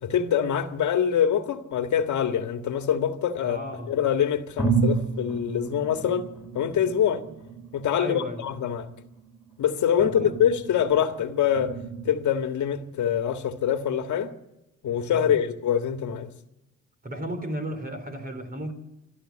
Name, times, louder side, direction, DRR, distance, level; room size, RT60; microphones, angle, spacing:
voice 1, 0.0-3.6 3.9-6.3 6.5-7.2 7.7-8.9 9.6-11.7 12.0-14.3 14.8-16.3, left 9 dB, 70° left, 1.7 m, -24 dB
sound 1, 2.3-3.5 4.1-4.2 4.6-12.1, right 5 dB, 5° right, 4.9 m, -33 dB
voice 2, 3.4-3.9 8.0-8.4 10.0-10.4 15.1-15.4 17.0-18.7, equal, 30° right, 4.2 m, -34 dB
27.5 x 12.5 x 8.8 m
cardioid pair, 90°, 30 cm